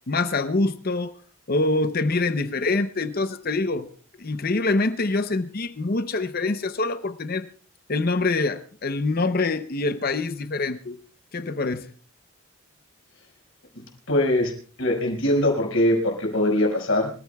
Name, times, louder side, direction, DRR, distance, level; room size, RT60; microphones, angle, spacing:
voice 1, 0.1-1.1 1.5-3.9 4.2-7.5 7.9-11.0 11.3-11.9, left 3 dB, 45° left, 11 dB, 0.6 m, -25 dB
voice 2, 14.1-14.5 14.8-17.1, left 1 dB, 65° left, 1 dB, 5.2 m, -22 dB
28.0 x 14.5 x 2.3 m, 0.42 s
head